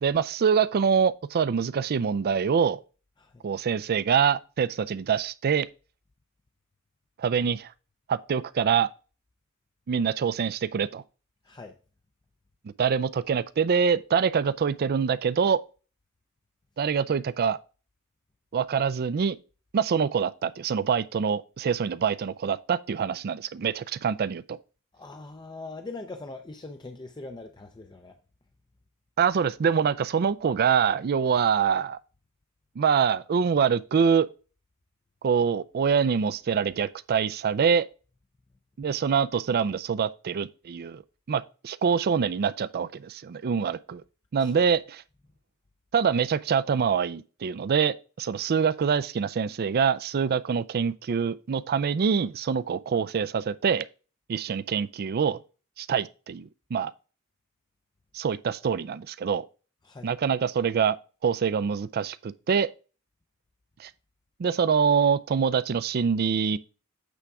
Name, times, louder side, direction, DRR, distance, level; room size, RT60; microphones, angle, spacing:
voice 1, 0.0-2.8 3.4-5.7 7.2-7.7 8.1-8.9 9.9-11.0 12.6-15.6 16.8-17.6 18.5-19.4 19.7-24.6 29.2-32.0 32.8-34.3 35.2-37.9 38.8-41.0 41.3-44.0 44.3-45.0 45.9-53.9 54.3-55.4 55.8-56.9 58.1-59.4 60.0-61.0 61.2-62.7 63.8-63.9 64.4-66.6, right 6 dB, 45° right, 0.4 m, -25 dB
voice 2, 11.4-11.8 24.9-28.2 44.4-44.7 59.8-60.1, left 3 dB, 20° left, 0.5 m, -42 dB
8.3 x 3.4 x 4.8 m
head